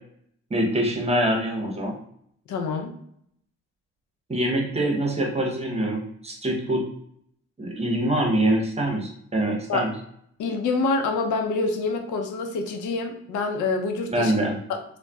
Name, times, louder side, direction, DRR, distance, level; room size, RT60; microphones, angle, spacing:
voice 1, 0.5-1.9 4.3-6.8 7.6-9.9 14.1-14.6, right 1 dB, 20° right, 1 dB, 0.8 m, -24 dB
voice 2, 2.5-2.9 9.7-9.8 10.4-14.3 14.7-14.8, left 3 dB, 80° left, 4 dB, 0.6 m, -26 dB
3.8 x 2.1 x 2.3 m, 0.69 s
cardioid pair, 90°, 30 cm